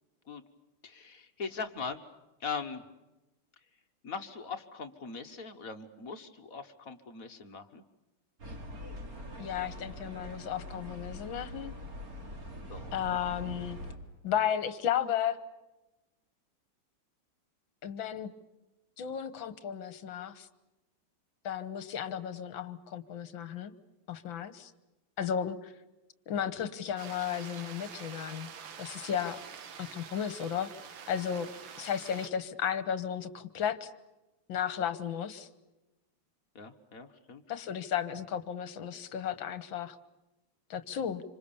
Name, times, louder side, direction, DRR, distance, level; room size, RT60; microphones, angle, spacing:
voice 1, 0.8-2.0 2.4-2.8 4.0-7.8 12.7-13.0 36.5-37.4, left 5 dB, 45° left, 7 dB, 1.7 m, -40 dB
sound 1, 8.4-14.0, equal, 40° right, 3.3 m, -43 dB
voice 2, 9.4-11.7 12.9-13.8 14.2-15.4 17.8-18.3 19.0-20.5 21.4-23.7 24.1-24.7 25.2-25.7 26.3-28.5 28.8-29.4 29.8-30.7 31.1-31.5 31.8-33.9 34.5-35.5 37.5-40.0 40.7-41.2, left 9 dB, 65° left, 14 dB, 1.9 m, -34 dB
sound 2, 27.0-32.3, right 7 dB, 65° right, 2.0 m, -47 dB
27.0 x 26.0 x 7.1 m, 1.0 s
omnidirectional pair, 2.3 m